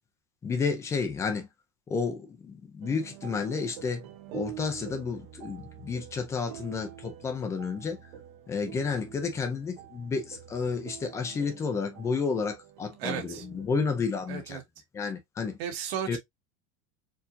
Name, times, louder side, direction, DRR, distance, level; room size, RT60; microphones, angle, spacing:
voice 1, 0.4-1.5 1.9-4.1 4.3-8.0 8.5-14.6 14.9-15.6 16.1-16.2, left 5 dB, 10° left, 0.4 m, -31 dB
sound 1, 2.8-14.6, right 12 dB, 50° right, 0.8 m, -46 dB
voice 2, 13.0-13.4 14.3-14.6 15.6-16.2, right 9 dB, 70° right, 1.8 m, -34 dB
4.5 x 2.7 x 2.5 m
supercardioid pair, 180°, 32 cm